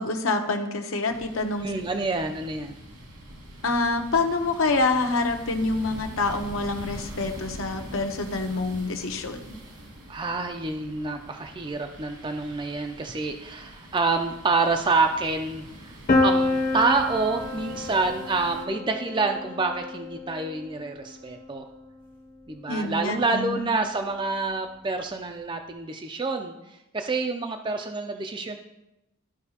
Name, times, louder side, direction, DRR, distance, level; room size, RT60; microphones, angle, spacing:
voice 1, 0.0-1.7 3.6-9.4 22.7-23.7, left 3 dB, 65° left, 5 dB, 0.9 m, -26 dB
sound 1, 1.1-18.6, right 1 dB, 85° right, 2.1 m, -43 dB
voice 2, 1.6-2.7 10.1-15.9 16.2-21.6 22.5-26.5 26.9-28.6, right 3 dB, 20° right, 5 dB, 0.4 m, -27 dB
Piano, 16.1-21.9, left 2 dB, 40° left, 0.8 m, -28 dB
13.5 x 4.8 x 2.8 m, 0.91 s
head